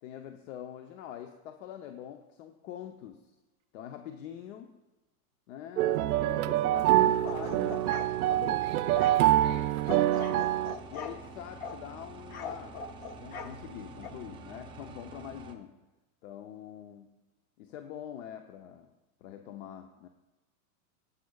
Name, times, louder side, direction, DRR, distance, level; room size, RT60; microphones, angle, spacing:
voice 1, 0.0-3.3 3.7-4.8 5.5-7.9 8.3-8.7 10.3-10.6 10.9-12.8 13.2-15.8 16.2-17.2 17.6-18.9 19.2-20.1, left 10 dB, 60° left, 6 dB, 0.9 m, -44 dB
sound 1, 5.8-10.7, right 14 dB, 75° right, 0.6 m, -25 dB
sound 2, 6.7-15.6, right 3 dB, 10° right, 0.7 m, -48 dB
sound 3, 7.3-8.4 8.9-9.2 9.9-11.2 11.6-11.8 12.3-13.5 14.0-14.1, left 5 dB, 20° left, 0.5 m, -41 dB
voice 2, 8.6-10.9, right 6 dB, 45° right, 4 dB, 2.3 m, -49 dB
18.0 x 9.1 x 2.4 m, 1.1 s
supercardioid pair, 145°, 44 cm